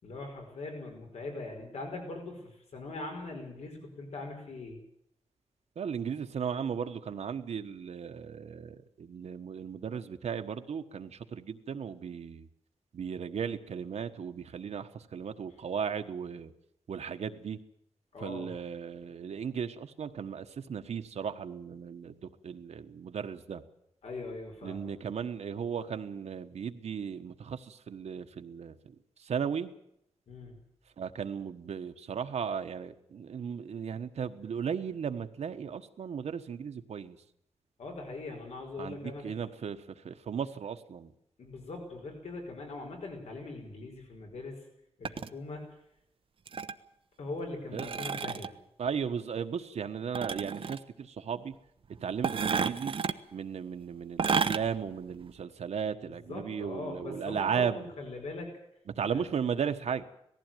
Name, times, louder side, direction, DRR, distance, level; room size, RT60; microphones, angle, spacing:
voice 1, 0.0-4.8 18.1-18.6 24.0-24.9 30.3-30.5 37.8-39.3 41.4-44.6 45.0-45.7 47.2-48.5 56.1-58.5 59.1-59.2, left 3 dB, 80° left, 2 dB, 5.1 m, -41 dB
voice 2, 5.8-12.5 12.9-16.5 16.9-17.6 18.2-23.6 24.6-28.8 29.2-29.7 31.0-37.2 38.8-41.1 47.7-47.9 48.8-51.5 52.0-52.9 53.3-57.9 59.0-60.0, right 7 dB, 85° right, 7 dB, 1.4 m, -36 dB
sound 1, 45.0-45.3 46.5-46.8 47.8-48.5 50.1-50.8 52.2-53.2 54.2-54.6 55.1-55.2, right 6 dB, 55° right, 0.9 m, -31 dB
19.0 x 15.0 x 9.2 m, 0.76 s
wide cardioid pair, 155°, 11 cm